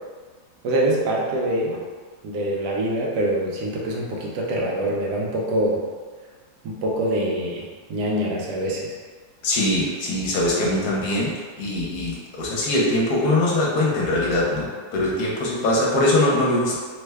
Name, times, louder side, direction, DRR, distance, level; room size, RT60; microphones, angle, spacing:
voice 1, 0.6-1.8 2.2-5.8 6.6-8.9, right 1 dB, 80° right, -2 dB, 1.2 m, -24 dB
voice 2, 9.4-11.3 11.6-16.8, left 1 dB, 75° left, -4 dB, 1.2 m, -22 dB
3.2 x 2.1 x 3.3 m, 1.5 s
omnidirectional pair, 1.8 m